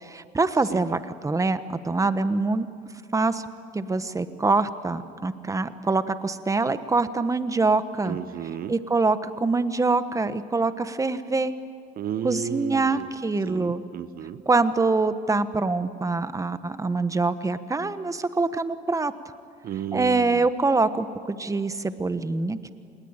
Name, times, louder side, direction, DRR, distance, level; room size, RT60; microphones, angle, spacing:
voice 1, 0.0-2.7 3.1-3.4 3.7-8.2 8.7-11.5 12.2-13.8 14.5-19.1 19.9-22.7, right 3 dB, 20° right, 12 dB, 1.3 m, -24 dB
voice 2, 8.1-8.8 12.0-13.1 13.4-14.4 19.6-20.4, right 9 dB, 60° right, 13 dB, 0.9 m, -33 dB
27.0 x 20.5 x 8.9 m, 2.3 s
supercardioid pair, 85°, 17 cm